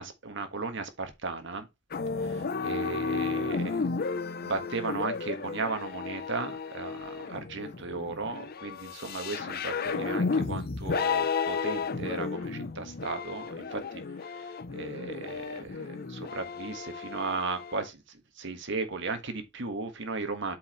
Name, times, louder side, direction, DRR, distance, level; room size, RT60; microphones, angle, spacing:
voice 1, 0.0-1.7 2.2-3.8 4.4-20.6, right 3 dB, 60° right, 1.5 m, -36 dB
sound 1, 1.9-17.9, left 5 dB, 50° left, 0.6 m, -33 dB
8.0 x 4.9 x 3.1 m
head